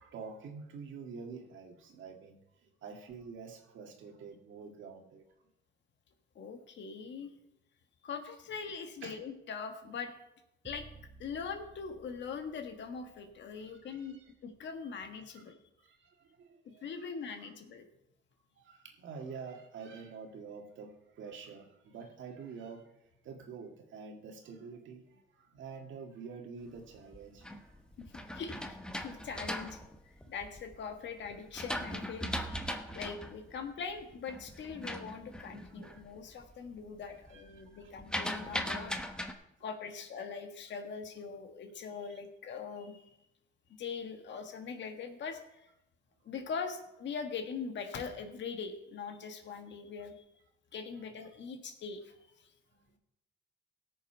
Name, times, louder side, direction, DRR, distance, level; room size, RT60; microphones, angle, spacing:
voice 1, 0.0-5.3 9.0-9.1 13.5-14.3 15.3-15.4 15.8-17.5 18.6-23.0 23.2-27.8 32.6-33.0 35.8-36.4 37.1-38.0 42.0-42.1 52.9-53.0, right 5 dB, 75° right, 1.9 m, -48 dB
voice 2, 6.3-7.3 8.0-10.1 10.6-10.9 11.2-14.2 14.4-15.6 16.6-17.9 28.3-29.8 30.3-38.9 39.6-43.1 43.8-45.7 46.2-50.2 50.7-52.0, left 5 dB, 65° left, 1.6 m, -42 dB
sound 1, 10.6-14.7, right 3 dB, 30° right, 3.0 m, -57 dB
sound 2, 26.9-30.7 31.2-36.1 36.4-36.8 37.1-39.3, equal, 5° left, 1.0 m, -39 dB
17.5 x 6.8 x 4.5 m
cardioid pair, 90°, 20 cm